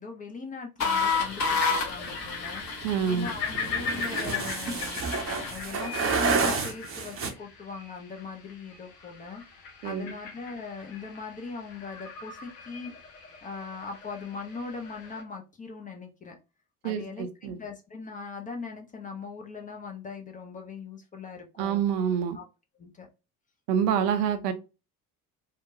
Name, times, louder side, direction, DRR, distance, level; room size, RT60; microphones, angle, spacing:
voice 1, 0.0-2.6 3.1-5.0 5.4-9.4 9.8-12.9 13.4-16.4 16.8-21.8 22.3-22.4 22.8-23.1, left 4 dB, 20° left, 0.4 m, -40 dB
sound 1, 0.8-5.6, left 4 dB, 35° left, 0.9 m, -31 dB
sound 2, 0.9-15.2, left 5 dB, 70° left, 0.8 m, -39 dB
sound 3, 2.0-7.3, right 4 dB, 30° right, 0.6 m, -30 dB
voice 2, 2.8-3.3 9.8-10.1 16.8-17.6 21.6-22.4 23.7-24.5, right 8 dB, 70° right, 0.6 m, -27 dB
2.8 x 2.1 x 2.6 m
figure-of-eight pair, 50°, 49 cm